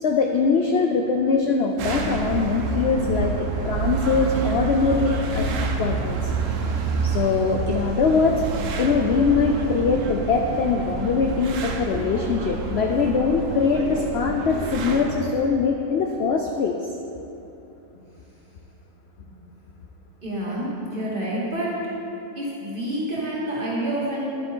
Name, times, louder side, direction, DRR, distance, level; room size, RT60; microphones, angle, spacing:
voice 1, 0.0-6.3 7.0-8.4 8.7-16.8, left 5 dB, 60° left, 3 dB, 0.8 m, -22 dB
sound 1, 1.8-15.3, right 4 dB, 65° right, 1.1 m, -28 dB
voice 2, 20.2-21.8 22.3-24.2, right 1 dB, 35° right, -7 dB, 2.7 m, -28 dB
11.0 x 8.7 x 4.5 m, 2.9 s
omnidirectional pair, 1.5 m